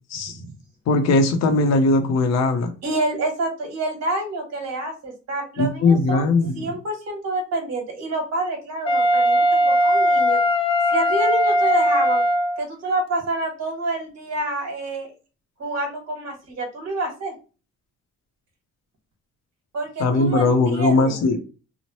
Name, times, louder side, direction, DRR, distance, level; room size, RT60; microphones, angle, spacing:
voice 1, 0.9-2.7 5.6-6.6 20.0-21.4, left 3 dB, 60° left, 0.7 m, -19 dB
voice 2, 2.8-6.3 6.5-10.4 10.9-12.2 12.6-15.1 15.6-17.3 19.7-21.2, right 2 dB, 60° right, 1.3 m, -27 dB
Wind instrument woodwind instrument, 8.9-12.6, equal, 20° left, 0.4 m, -19 dB
3.1 x 2.0 x 2.9 m
cardioid pair, 90°, 30 cm